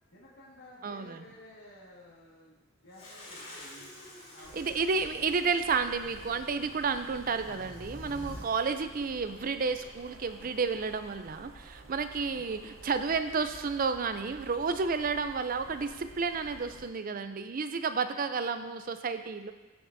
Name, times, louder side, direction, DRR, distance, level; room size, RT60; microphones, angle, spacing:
voice 1, 0.1-2.6 2.8-3.9 4.3-4.6 11.7-11.9, left 1 dB, 75° left, -8 dB, 1.9 m, -53 dB
voice 2, 0.8-1.2 4.5-19.5, right 5 dB, 45° right, 9 dB, 0.5 m, -31 dB
sound 1, 2.9-8.5, left 1 dB, 30° left, 2.9 m, -48 dB
sound 2, 4.4-16.9, right 2 dB, 90° right, 0.9 m, -52 dB
16.0 x 6.1 x 2.7 m, 1.2 s
head